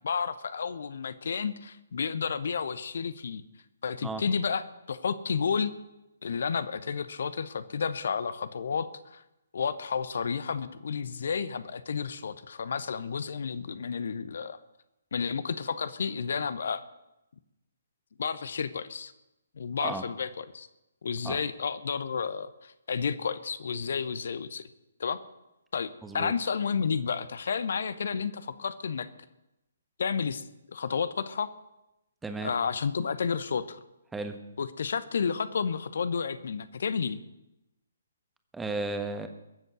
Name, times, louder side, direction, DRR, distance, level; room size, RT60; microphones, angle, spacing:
voice 1, 0.0-3.4 3.8-5.7 6.2-9.2 9.5-14.6 15.1-16.8 18.2-19.1 19.6-20.7 21.0-24.6 25.0-25.2 25.7-29.1 30.0-31.5 32.4-33.8 34.6-37.2, left 6 dB, 55° left, 13 dB, 0.9 m, -31 dB
voice 2, 26.0-26.3 32.2-32.5 34.1-34.4 38.5-39.3, right 3 dB, 5° right, 7 dB, 1.3 m, -34 dB
22.0 x 7.9 x 6.3 m, 0.91 s
figure-of-eight pair, 135°, 0 cm